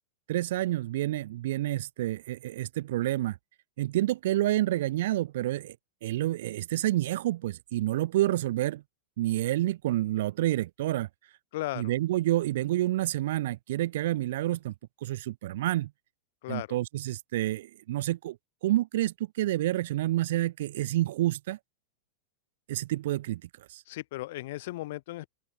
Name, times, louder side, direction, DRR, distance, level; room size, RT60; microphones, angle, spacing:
voice 1, 0.3-3.4 3.8-5.8 6.0-8.8 9.2-11.1 11.8-14.7 15.0-15.9 16.5-18.4 18.6-21.6 22.7-23.8, right 15 dB, 70° right, 1.3 m, -28 dB
voice 2, 11.5-11.9 16.4-16.7 23.8-25.3, left 17 dB, 65° left, 6.7 m, -36 dB
open air
supercardioid pair, 135°, 0 cm